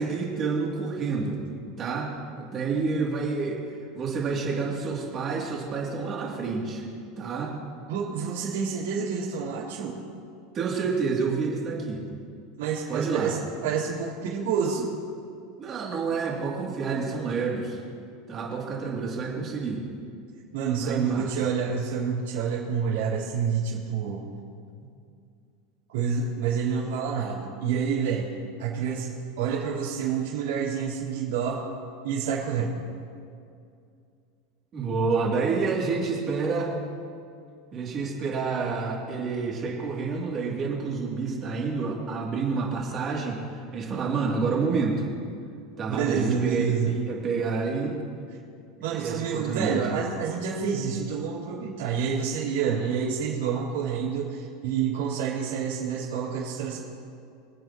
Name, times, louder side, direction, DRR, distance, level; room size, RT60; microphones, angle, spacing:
voice 1, 0.0-1.4 1.8-3.6 3.9-6.8 7.2-7.6 10.5-12.0 12.9-13.4 15.6-17.8 18.3-19.8 20.8-21.3 34.7-36.8 37.7-43.4 43.7-45.1 45.8-48.0 48.9-49.8, right 4 dB, 30° right, -3 dB, 2.7 m, -28 dB
voice 2, 7.9-10.0 12.6-13.4 13.6-14.9 20.5-24.2 25.9-28.3 28.6-31.6 32.0-32.7 45.9-46.9 48.8-56.8, right 6 dB, 80° right, -9 dB, 3.6 m, -28 dB
26.0 x 8.7 x 3.0 m, 2.4 s
supercardioid pair, 155°, 0 cm